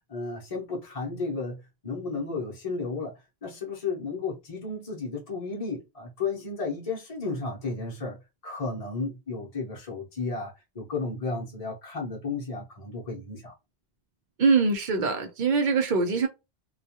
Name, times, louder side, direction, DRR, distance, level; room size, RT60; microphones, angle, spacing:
voice 1, 0.1-3.1 3.4-8.2 8.4-13.5, left 3 dB, 40° left, 0.7 m, -33 dB
voice 2, 14.4-16.3, right 4 dB, 55° right, 0.7 m, -23 dB
2.3 x 2.3 x 2.8 m
omnidirectional pair, 1.1 m